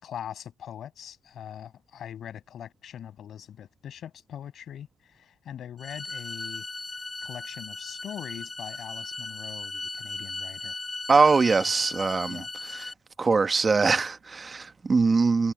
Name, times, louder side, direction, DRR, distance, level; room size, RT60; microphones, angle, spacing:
voice 1, 0.0-6.7 7.2-10.8 12.3-12.5, left 9 dB, 65° left, 6.9 m, -42 dB
sound 1, 5.8-12.9, left 3 dB, 20° left, 1.8 m, -37 dB
voice 2, 11.1-12.4 13.2-15.5, right 4 dB, 35° right, 1.1 m, -22 dB
cardioid pair, 90°, 0 cm